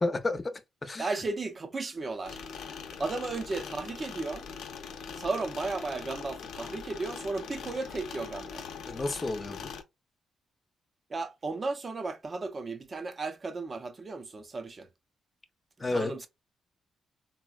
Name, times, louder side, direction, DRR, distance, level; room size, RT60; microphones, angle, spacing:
voice 1, 0.0-1.1 8.9-9.7 15.8-16.3, left 2 dB, 25° left, 0.5 m, -31 dB
voice 2, 1.0-2.4 3.0-4.5 5.1-8.7 11.1-14.9 15.9-16.3, right 3 dB, 30° right, 0.5 m, -34 dB
sound 1, 2.2-9.8, left 6 dB, 75° left, 0.5 m, -42 dB
3.9 x 2.0 x 2.3 m
cardioid pair, 130°, 0 cm